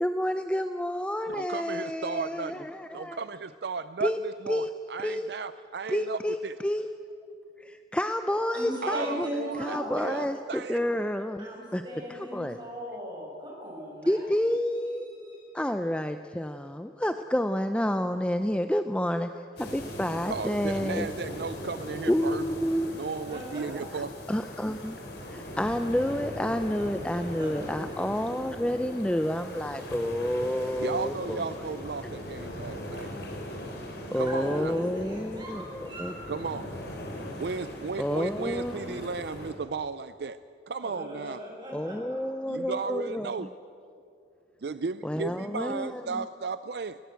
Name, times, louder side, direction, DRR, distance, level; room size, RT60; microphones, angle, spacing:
voice 1, 0.0-3.2 4.0-4.2 4.5-4.7 5.0-5.3 5.9-6.4 6.6-6.9 7.6-9.3 9.6-11.8 12.1-12.6 14.1-15.1 15.5-19.3 19.6-21.1 22.1-22.9 23.9-24.0 24.3-25.0 25.3-31.4 34.1-36.1 38.0-39.0 41.7-43.5 45.0-46.3, equal, 5° left, 8 dB, 0.5 m, -29 dB
voice 2, 1.3-2.6 2.9-6.6 8.8-10.8 20.3-22.5 22.9-24.1 30.8-33.1 34.1-34.7 36.3-36.7 37.4-40.4 40.7-41.4 42.5-43.5 44.6-47.0, right 4 dB, 65° right, 13 dB, 0.5 m, -35 dB
voice 3, 8.5-10.3 11.4-14.2 15.0-15.5 23.2-23.8 26.1-26.2 26.6-27.6 34.3-36.2 40.8-42.2, equal, 25° right, -2 dB, 6.8 m, -38 dB
sound 1, 19.6-39.5, left 1 dB, 65° left, 4.2 m, -40 dB
21.5 x 17.0 x 8.1 m, 2.5 s
head